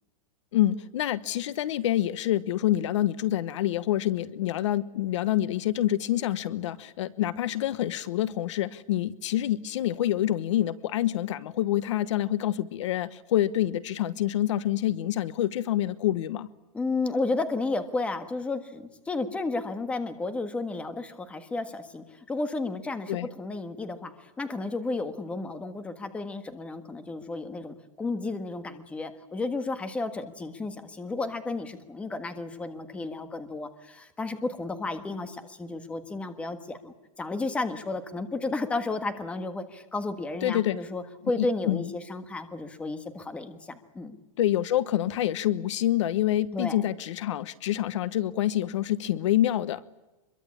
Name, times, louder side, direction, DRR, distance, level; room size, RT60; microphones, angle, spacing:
voice 1, 0.5-16.5 23.1-23.3 40.4-40.8 41.4-41.9 44.4-49.9, left 13 dB, 60° left, 16 dB, 1.1 m, -27 dB
voice 2, 16.7-44.2 46.5-46.8, left 3 dB, 5° left, 9 dB, 1.5 m, -32 dB
25.0 x 22.5 x 8.6 m, 1.1 s
supercardioid pair, 170°, 18 cm